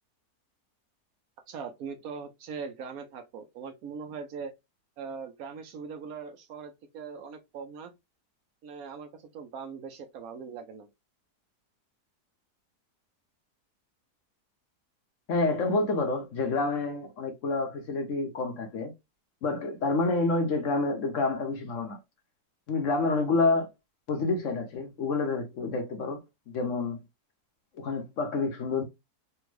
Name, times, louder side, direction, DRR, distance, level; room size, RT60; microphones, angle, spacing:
voice 1, 1.5-4.5 5.0-7.9 8.6-10.9, right 5 dB, 70° right, 1.0 m, -41 dB
voice 2, 15.3-18.9 19.4-22.0 22.7-23.7 24.1-26.2 26.5-27.0 27.8-28.8, left 3 dB, 60° left, 0.9 m, -28 dB
3.4 x 2.3 x 3.1 m
omnidirectional pair, 1.7 m